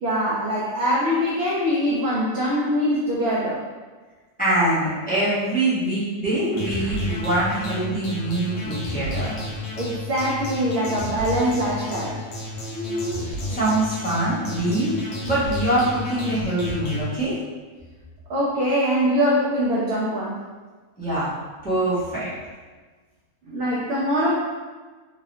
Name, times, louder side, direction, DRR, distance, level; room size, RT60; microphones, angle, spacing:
voice 1, 0.0-3.6 9.8-12.2 18.3-20.4 23.5-24.4, equal, 65° right, -6 dB, 0.6 m, -23 dB
voice 2, 4.4-9.3 12.7-13.2 13.5-17.4 21.0-21.3 21.6-22.3, right 1 dB, 5° left, -12 dB, 0.8 m, -24 dB
sound 1, 6.5-17.0, left 1 dB, 60° left, 1.0 m, -32 dB
2.9 x 2.9 x 2.6 m, 1.4 s
omnidirectional pair, 1.6 m